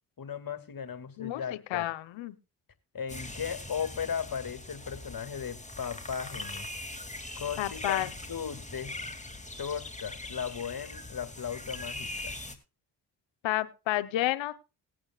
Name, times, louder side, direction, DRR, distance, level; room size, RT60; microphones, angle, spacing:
voice 1, 0.2-1.9 2.9-6.7 7.3-8.9 9.6-12.4, left 7 dB, 50° left, 10 dB, 2.1 m, -36 dB
voice 2, 1.2-2.4 7.6-8.1 13.4-14.5, left 14 dB, 85° left, 15 dB, 0.9 m, -30 dB
sound 1, 3.1-12.5, left 2 dB, 15° left, 2.3 m, -41 dB
19.0 x 8.8 x 2.3 m, 0.29 s
supercardioid pair, 45°, 44 cm